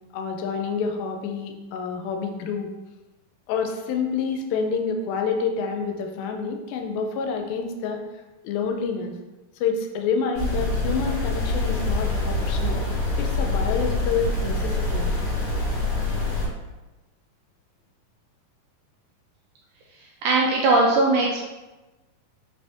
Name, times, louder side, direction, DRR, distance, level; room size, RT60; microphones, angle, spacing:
voice 1, 0.1-2.7 3.5-8.0 8.4-9.1 9.6-12.8 13.2-15.1, left 5 dB, 90° left, 4 dB, 2.4 m, -28 dB
sound 1, 10.3-16.5, left 2 dB, 55° left, 1.5 m, -25 dB
voice 2, 20.2-21.4, right 2 dB, 80° right, -2 dB, 1.8 m, -19 dB
5.4 x 2.7 x 3.4 m, 1.1 s
omnidirectional pair, 4.1 m